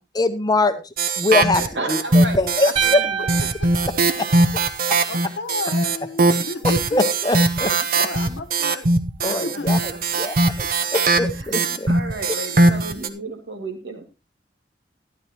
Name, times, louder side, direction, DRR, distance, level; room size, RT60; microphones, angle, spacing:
voice 1, 0.1-0.8 1.2-1.6 1.9-3.0 4.2-4.3 6.6-7.7 9.2-9.8 10.1-11.9, left 2 dB, 20° left, 0.8 m, -22 dB
sound 1, 1.0-2.9 3.3-13.1, right 2 dB, 50° right, 0.8 m, -20 dB
voice 2, 1.5-2.4 2.8-3.5 6.4-6.5 9.3-9.4 9.7-10.4 11.3-11.6 11.9-14.1, right 2 dB, 70° right, 2.3 m, -33 dB
sound 2, 2.8-5.0, right 8 dB, 30° right, 1.1 m, -27 dB
voice 3, 5.1-7.0 7.7-8.9 9.2-9.7, left 3 dB, 75° left, 1.2 m, -32 dB
12.0 x 11.5 x 3.0 m
head